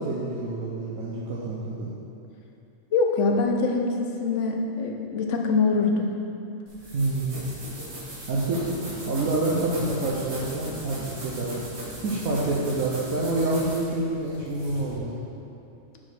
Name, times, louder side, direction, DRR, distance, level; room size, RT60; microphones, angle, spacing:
voice 1, 0.0-1.9 6.9-7.4 8.3-8.8 9.1-11.6 12.0-15.1, right 2 dB, 80° right, -6 dB, 1.3 m, -27 dB
voice 2, 2.9-6.1, left 4 dB, 65° left, 2 dB, 1.1 m, -24 dB
sound 1, 6.7-15.0, right 1 dB, 55° right, 1.8 m, -38 dB
6.2 x 4.8 x 6.1 m, 2.7 s
omnidirectional pair, 1.4 m